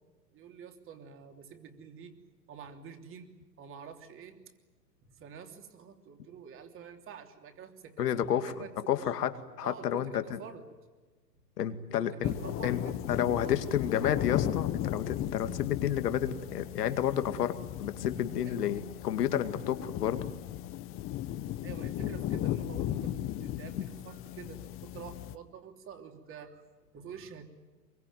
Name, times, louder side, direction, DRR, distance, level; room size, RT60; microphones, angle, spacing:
voice 1, 0.3-2.2 2.5-4.4 5.1-9.1 9.6-10.6 12.0-13.0 13.4-14.4 18.4-18.8 21.6-26.6 26.9-27.5, right 6 dB, 25° right, 5 dB, 3.2 m, -47 dB
voice 2, 8.0-8.5 8.9-10.4 11.6-12.3 12.6-12.8 13.1-17.5 17.8-20.2 22.0-22.1 23.7-23.8, left 10 dB, 70° left, 9 dB, 2.3 m, -30 dB
sound 1, 12.2-25.4, left 12 dB, 25° left, 1.1 m, -36 dB
24.0 x 23.0 x 9.4 m, 1.3 s
hypercardioid pair, 125°, 49 cm